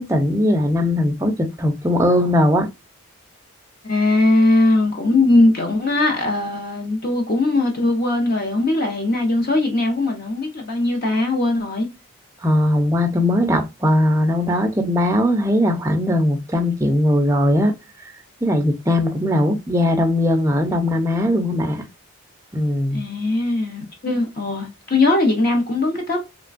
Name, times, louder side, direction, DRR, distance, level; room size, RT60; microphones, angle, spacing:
voice 1, 0.0-2.7 12.4-17.7 18.4-21.8 22.5-23.0, left 1 dB, 15° right, 0.4 m, -19 dB
voice 2, 3.8-11.9 22.9-26.2, left 2 dB, 40° left, 0.6 m, -19 dB
3.1 x 2.2 x 2.4 m
head